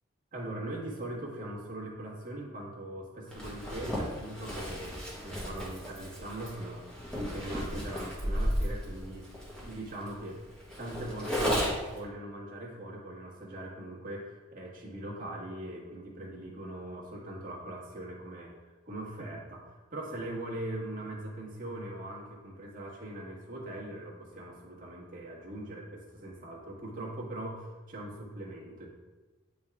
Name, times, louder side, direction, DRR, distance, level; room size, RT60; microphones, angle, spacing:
voice 1, 0.3-9.3 9.6-10.4 10.8-28.9, right 1 dB, 40° right, -3 dB, 1.5 m, -41 dB
Zipper (clothing), 3.3-12.0, equal, 5° left, 1.3 m, -34 dB
9.4 x 3.5 x 3.5 m, 1.3 s
head